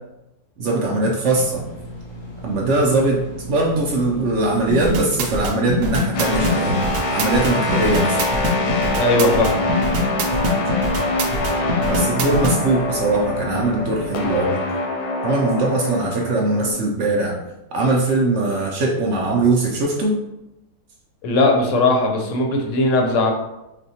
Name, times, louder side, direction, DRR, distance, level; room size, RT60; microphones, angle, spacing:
voice 1, 0.6-1.6 2.4-6.8 7.1-8.2 11.9-14.6 15.2-17.4 17.7-20.2, right 2 dB, 70° right, -1 dB, 0.7 m, -20 dB
sound 1, 1.3-14.4, equal, 25° left, 0.7 m, -36 dB
sound 2, 4.7-12.6, equal, 90° right, 1.1 m, -23 dB
sound 3, 6.1-16.7, left 2 dB, 90° left, 1.2 m, -24 dB
voice 2, 9.0-9.6 21.2-23.3, left 2 dB, 65° left, 1 dB, 0.8 m, -18 dB
4.2 x 2.2 x 2.7 m, 0.92 s
omnidirectional pair, 1.7 m